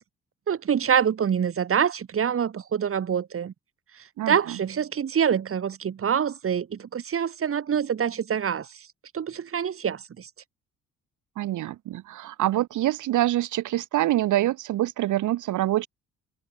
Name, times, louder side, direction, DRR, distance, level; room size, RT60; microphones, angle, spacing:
voice 1, 0.5-3.5 4.3-8.7 9.1-10.3, right 8 dB, 45° right, 1.9 m, -25 dB
voice 2, 4.2-4.6 11.4-15.9, right 14 dB, 80° right, 1.8 m, -25 dB
cardioid pair, 90°, 30 cm